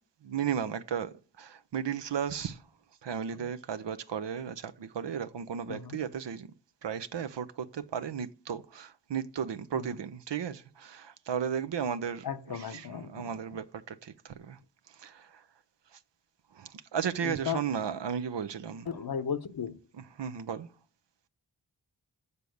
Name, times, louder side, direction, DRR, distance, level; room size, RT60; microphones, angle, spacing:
voice 1, 0.2-2.6 3.0-6.5 6.8-12.3 12.5-14.6 14.9-15.4 16.5-18.9 20.2-20.7, right 7 dB, 90° right, 0.7 m, -35 dB
voice 2, 5.7-6.0 9.7-10.0 12.2-13.6 17.2-17.6 18.9-19.8, left 7 dB, 60° left, 0.8 m, -36 dB
7.0 x 6.8 x 7.8 m
cardioid pair, 45°, 41 cm